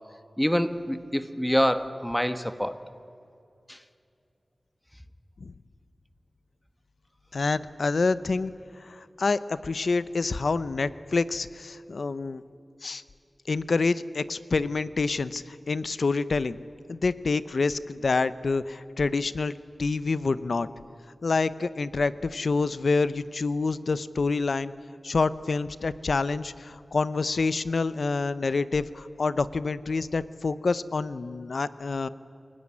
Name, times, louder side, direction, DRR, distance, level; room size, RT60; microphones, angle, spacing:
voice 1, 0.4-2.9 3.7-3.8, equal, 5° left, 11 dB, 1.4 m, -26 dB
voice 2, 7.3-8.5 8.8-12.4 12.8-13.0 13.5-16.6 16.9-19.5 19.8-20.7 21.2-24.7 25.0-32.1, left 4 dB, 75° left, 15 dB, 0.8 m, -27 dB
28.0 x 17.5 x 9.8 m, 2.5 s
wide cardioid pair, 65°, 0 cm